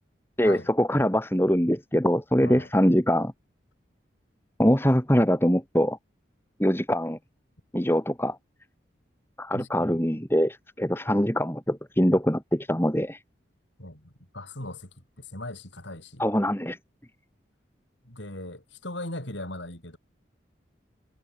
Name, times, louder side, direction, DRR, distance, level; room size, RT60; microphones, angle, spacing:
voice 1, 0.4-3.3 4.6-6.0 6.6-7.2 7.7-8.4 9.4-13.2 16.2-16.8, equal, 10° left, 2.4 m, -23 dB
voice 2, 9.5-10.0 13.8-14.9 15.2-16.2 18.1-20.0, left 1 dB, 80° left, 7.1 m, -39 dB
head